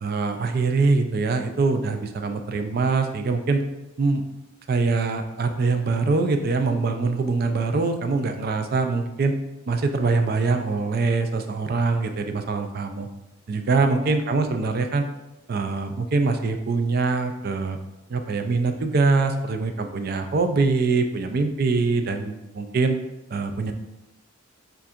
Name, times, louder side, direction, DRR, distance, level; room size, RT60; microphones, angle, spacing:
voice 1, 0.0-3.6 4.0-4.2 4.7-9.3 9.7-13.1 13.5-15.0 15.5-17.8 18.1-23.0 23.3-23.7, right 3 dB, 45° right, 7 dB, 0.3 m, -23 dB
6.9 x 2.5 x 2.4 m, 0.98 s
head